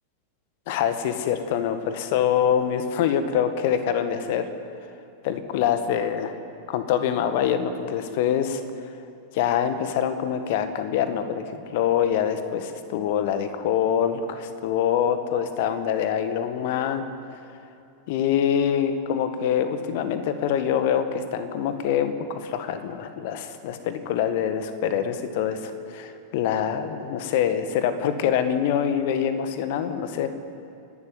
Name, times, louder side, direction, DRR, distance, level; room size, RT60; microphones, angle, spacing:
voice 1, 0.7-4.5 5.2-6.3 6.7-8.6 9.3-17.0 18.1-30.3, left 9 dB, 50° left, 9 dB, 1.7 m, -25 dB
29.5 x 12.0 x 9.6 m, 2.6 s
figure-of-eight pair, 90°, 0 cm